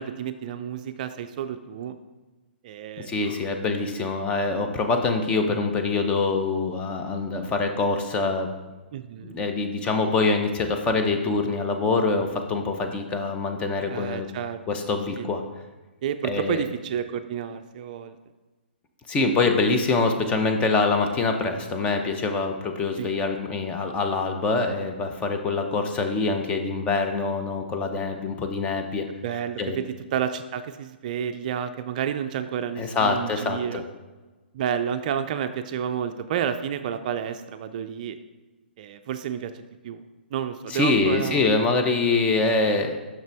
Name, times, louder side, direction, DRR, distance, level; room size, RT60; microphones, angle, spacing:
voice 1, 0.0-2.0 2.6-3.4 8.9-9.4 13.9-14.6 15.1-15.3 16.0-18.2 23.0-23.1 29.2-29.9 30.1-33.8 34.5-38.2 38.8-40.0 40.3-41.4, right 8 dB, 45° right, 9 dB, 0.3 m, -30 dB
voice 2, 3.0-8.5 9.3-14.3 14.7-15.4 16.2-16.6 19.1-29.1 29.6-29.8 32.8-33.8 40.7-43.0, left 3 dB, 20° left, 4 dB, 0.6 m, -24 dB
6.4 x 6.0 x 3.4 m, 1.2 s
hypercardioid pair, 130°, 6 cm